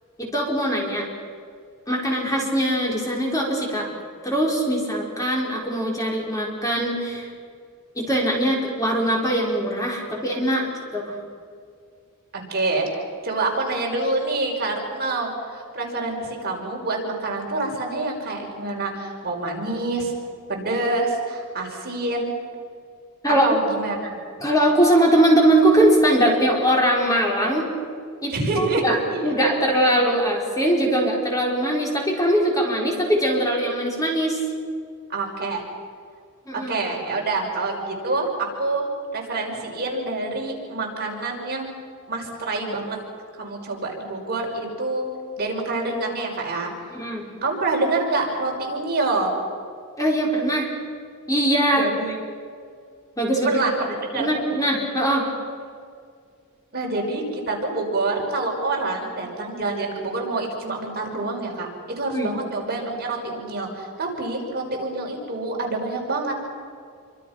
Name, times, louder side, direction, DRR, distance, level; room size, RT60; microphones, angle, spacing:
voice 1, 0.2-1.1 1.9-3.9 4.2-7.3 8.0-10.7 10.9-11.2 23.2-23.5 24.4-27.7 28.2-34.4 36.5-36.7 46.9-47.3 50.0-50.7 51.3-51.9 53.2-53.6 54.1-55.3 62.1-62.3, right 1 dB, 15° left, -1 dB, 5.3 m, -21 dB
voice 2, 12.3-20.1 20.5-22.3 23.4-24.2 28.3-29.3 35.1-35.6 36.7-38.9 39.1-41.7 42.1-43.0 43.4-45.0 45.4-46.7 47.4-49.4 51.7-52.2 53.4-54.4 56.7-61.7 62.0-66.4, right 2 dB, 45° right, 0 dB, 5.5 m, -26 dB
28.0 x 25.5 x 6.0 m, 2.2 s
head